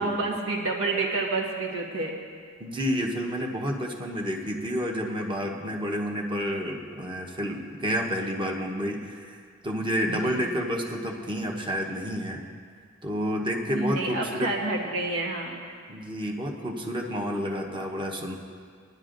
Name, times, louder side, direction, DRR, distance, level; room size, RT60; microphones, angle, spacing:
voice 1, 0.0-2.1 10.1-10.5 13.7-15.6, right 3 dB, 75° right, -1 dB, 1.6 m, -29 dB
voice 2, 2.6-9.4 9.6-12.4 13.0-14.5 15.9-18.4, equal, 25° right, 1 dB, 1.0 m, -30 dB
20.0 x 11.0 x 2.6 m, 2.1 s
head